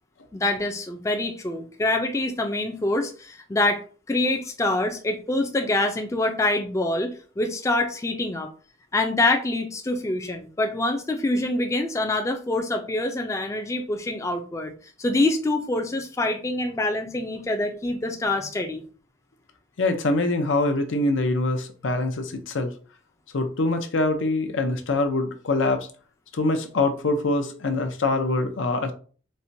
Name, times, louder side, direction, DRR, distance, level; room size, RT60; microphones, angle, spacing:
voice 1, 0.3-8.5 8.9-14.7 15.0-18.8, left 2 dB, 15° left, 0.3 m, -25 dB
voice 2, 19.8-22.7 23.3-25.9 26.3-28.9, left 2 dB, 90° left, 0.6 m, -24 dB
4.2 x 2.1 x 2.6 m
head